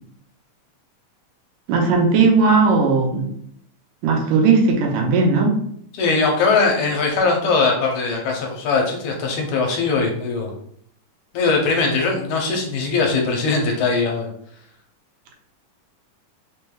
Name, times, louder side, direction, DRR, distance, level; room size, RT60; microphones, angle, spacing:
voice 1, 1.7-3.3 4.0-5.6, right 4 dB, 80° right, 1 dB, 2.3 m, -17 dB
voice 2, 5.9-10.5 11.3-14.3, left 4 dB, 75° left, 1 dB, 2.1 m, -20 dB
5.4 x 3.3 x 2.3 m, 0.67 s
omnidirectional pair, 3.6 m